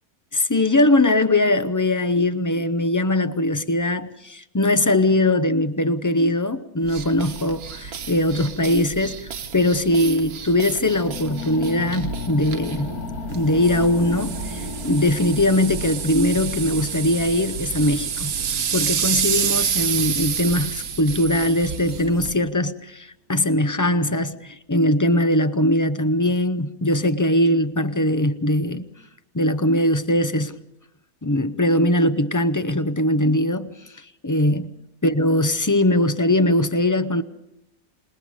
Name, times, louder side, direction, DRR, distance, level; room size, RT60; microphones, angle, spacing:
voice 1, 0.3-12.9 13.3-18.3 18.7-28.8 29.3-30.6 31.2-34.7 35.0-37.2, left 1 dB, 25° left, 0.4 m, -21 dB
sound 1, 6.8-22.4, right 7 dB, 70° right, 1.5 m, -29 dB
sound 2, 10.8-20.8, left 3 dB, 70° left, 2.5 m, -36 dB
27.0 x 21.0 x 5.1 m
omnidirectional pair, 1.6 m